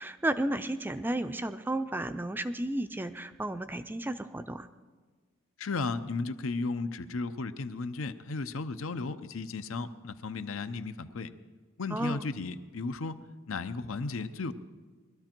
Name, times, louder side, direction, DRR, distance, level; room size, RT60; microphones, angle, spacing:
voice 1, 0.0-4.7 11.9-12.3, right 1 dB, 10° right, 11 dB, 0.4 m, -33 dB
voice 2, 5.6-11.3 11.8-13.2 13.5-14.5, left 3 dB, 85° left, 11 dB, 0.7 m, -34 dB
21.0 x 12.5 x 4.5 m, 1.4 s
head